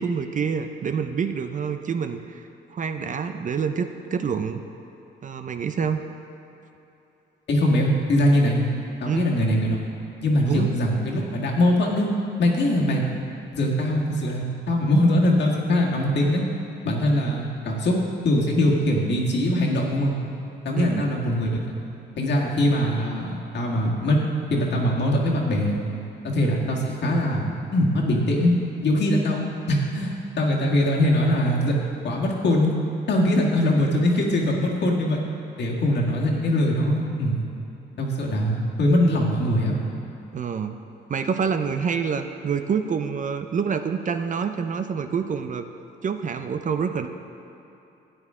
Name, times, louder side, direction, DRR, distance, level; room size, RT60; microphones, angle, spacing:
voice 1, 0.0-4.6 5.2-6.1 9.1-9.3 10.5-10.8 20.8-21.1 40.3-40.7 41.1-45.7 46.0-47.1, right 6 dB, 40° right, 8 dB, 0.5 m, -27 dB
voice 2, 7.5-8.7 9.0-9.8 10.2-12.1 12.4-13.0 13.5-16.5 16.8-20.1 20.7-21.7 22.2-24.2 24.5-25.8 26.3-28.5 28.8-31.8 32.0-32.7 33.1-35.2 35.6-37.4 38.0-39.8, left 1 dB, 60° left, -2 dB, 1.8 m, -22 dB
12.0 x 9.0 x 3.7 m, 3.0 s
cardioid pair, 90°, 20 cm